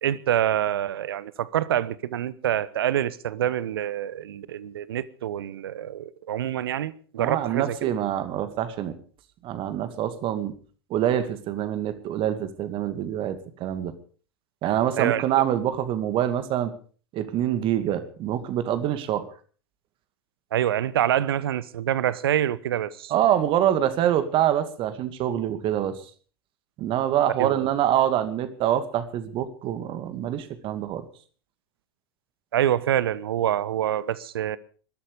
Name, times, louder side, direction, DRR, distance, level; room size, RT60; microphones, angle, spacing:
voice 1, 0.0-7.9 15.0-15.2 20.5-23.1 27.4-27.7 32.5-34.6, right 11 dB, 70° right, 1.0 m, -26 dB
voice 2, 7.2-9.0 9.4-10.5 10.9-13.9 14.6-16.7 17.1-19.3 23.1-26.0 26.8-31.0, right 11 dB, 45° right, 2.3 m, -25 dB
20.5 x 13.0 x 5.2 m
figure-of-eight pair, 85°, 13 cm